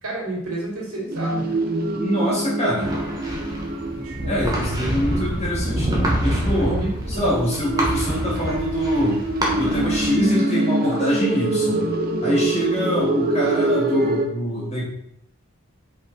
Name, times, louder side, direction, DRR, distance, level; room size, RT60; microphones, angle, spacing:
voice 1, 0.0-1.6 3.9-4.4 4.8-4.9 6.6-7.6, right 1 dB, 90° right, -3 dB, 2.9 m, -31 dB
sound 1, 1.1-6.3 7.1-14.3, right 1 dB, 40° right, 0.9 m, -25 dB
voice 2, 1.9-2.9 4.2-6.8 7.1-9.3 9.6-11.9 12.2-14.8, equal, 30° left, -5 dB, 2.7 m, -24 dB
sound 2, 2.8-10.2, equal, 15° right, 1.3 m, -26 dB
5.7 x 5.5 x 4.3 m, 0.73 s
head